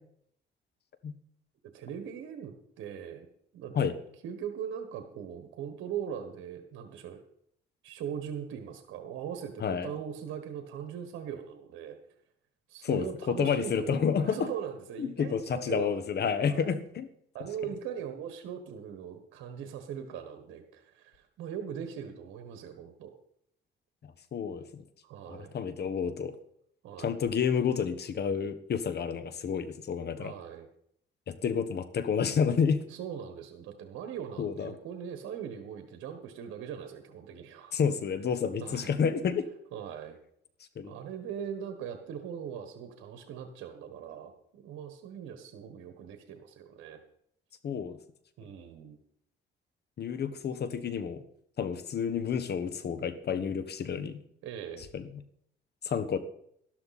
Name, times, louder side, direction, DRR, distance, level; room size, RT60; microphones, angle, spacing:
voice 1, 1.7-3.3 3.5-3.9 4.2-7.2 7.8-12.0 12.7-16.7 17.3-23.1 25.0-25.5 26.8-27.2 30.2-30.7 32.9-37.7 38.6-38.9 39.7-40.2 40.8-47.0 48.4-49.0 54.4-54.8, right 8 dB, 90° right, 7 dB, 1.4 m, -40 dB
voice 2, 12.8-14.4 15.0-17.1 24.3-24.8 25.3-26.3 27.0-30.3 31.3-32.8 34.4-34.7 37.7-39.5 40.8-41.0 47.6-48.0 50.0-51.2 51.6-54.2 54.9-55.0 55.8-56.2, left 7 dB, 55° left, 12 dB, 1.3 m, -30 dB
12.5 x 12.5 x 4.2 m, 0.68 s
cardioid pair, 90°, 20 cm